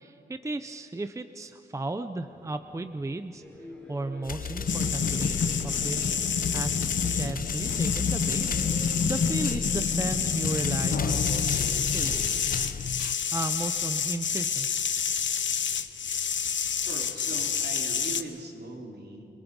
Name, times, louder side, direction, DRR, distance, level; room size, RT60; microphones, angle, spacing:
voice 1, 0.0-3.4 3.9-6.2 6.5-6.8 7.1-11.6 11.9-12.1 13.3-14.7, right 2 dB, 15° right, 9 dB, 0.6 m, -35 dB
sound 1, 2.2-12.5, left 1 dB, 5° left, 4.1 m, -48 dB
sound 2, 4.2-13.1, left 6 dB, 50° left, 0.6 m, -34 dB
sound 3, 4.7-18.2, left 6 dB, 80° left, 0.9 m, -28 dB
voice 2, 16.8-19.3, right 3 dB, 60° right, -1 dB, 3.6 m, -40 dB
28.5 x 22.5 x 5.4 m, 2.6 s
wide cardioid pair, 175°, 19 cm